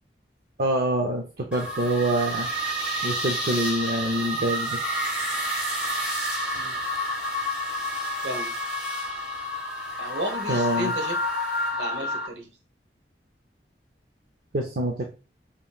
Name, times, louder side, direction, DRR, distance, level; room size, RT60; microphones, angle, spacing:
voice 1, 0.6-2.5 3.0-4.8 10.5-10.9 14.5-15.1, right 1 dB, 55° right, 1 dB, 0.6 m, -25 dB
sound 1, 1.5-12.3, equal, 5° right, 1.4 m, -29 dB
voice 2, 8.2-8.5 10.0-11.1 11.7-12.5, right 1 dB, 85° right, 4 dB, 1.0 m, -33 dB
5.3 x 3.0 x 2.3 m, 0.32 s
head